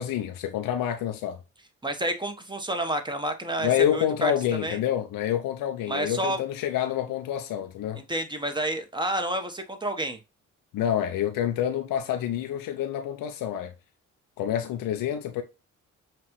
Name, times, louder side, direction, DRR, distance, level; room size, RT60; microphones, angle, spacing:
voice 1, 0.0-1.4 3.6-8.0 10.7-13.7 14.4-15.4, left 10 dB, 85° left, 0.6 m, -27 dB
voice 2, 1.8-4.3 4.6-4.8 5.9-6.4 8.1-10.2, right 1 dB, 15° right, 1.0 m, -29 dB
5.8 x 2.5 x 3.0 m
cardioid pair, 65°, 33 cm